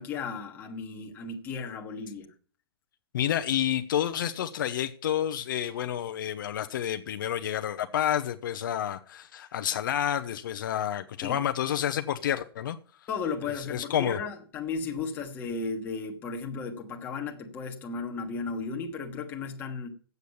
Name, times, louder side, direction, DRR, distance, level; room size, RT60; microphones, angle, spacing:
voice 1, 0.0-2.3 11.2-11.4 13.1-19.9, left 4 dB, 15° left, 1.3 m, -35 dB
voice 2, 3.1-12.8 13.6-14.2, left 10 dB, 55° left, 0.8 m, -29 dB
10.0 x 8.1 x 7.0 m
hypercardioid pair, 170°, 13 cm